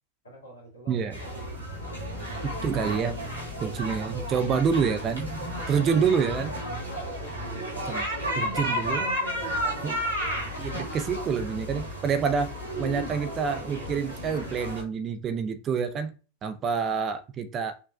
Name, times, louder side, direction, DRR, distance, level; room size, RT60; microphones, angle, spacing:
voice 1, 0.2-1.9 6.0-7.8 8.1-9.9, right 1 dB, 65° left, 1.9 m, -44 dB
sound 1, 1.1-14.8, equal, 90° right, 1.5 m, -33 dB
voice 2, 2.4-3.1 3.6-5.3 5.7-6.5 7.9-8.1 8.4-9.1 9.8-10.0 10.6-16.1 16.4-17.7, right 6 dB, 30° right, 0.4 m, -27 dB
6.3 x 2.2 x 2.2 m
figure-of-eight pair, 90°, 0 cm